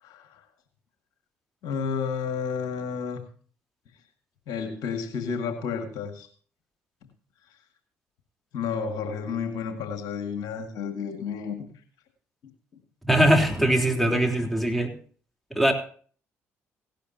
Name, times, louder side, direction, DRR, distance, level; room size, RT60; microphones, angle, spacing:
voice 1, 1.6-3.2 4.5-6.3 8.5-11.6 14.1-14.2, left 6 dB, 70° left, 6 dB, 1.9 m, -31 dB
voice 2, 13.1-14.9 15.5-15.7, right 1 dB, ahead, 3 dB, 3.4 m, -21 dB
17.0 x 11.5 x 2.8 m, 0.44 s
hypercardioid pair, 50°, 7 cm